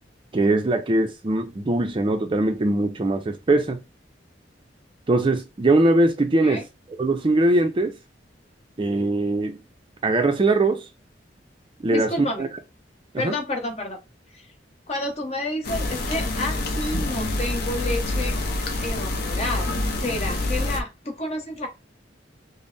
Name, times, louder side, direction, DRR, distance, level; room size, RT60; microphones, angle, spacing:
voice 1, 0.3-3.8 5.1-6.6 7.0-7.9 8.8-9.6 10.0-10.9 11.8-12.1 12.4-12.5 13.1-13.3, right 2 dB, 30° right, 0.4 m, -21 dB
voice 2, 11.9-12.4 13.2-14.0 14.3-14.5 14.9-18.4 18.8-19.7 20.0-21.7, left 1 dB, 35° left, 1.0 m, -30 dB
sound 1, 15.6-20.8, left 2 dB, 55° left, 0.7 m, -26 dB
5.3 x 2.0 x 2.5 m
head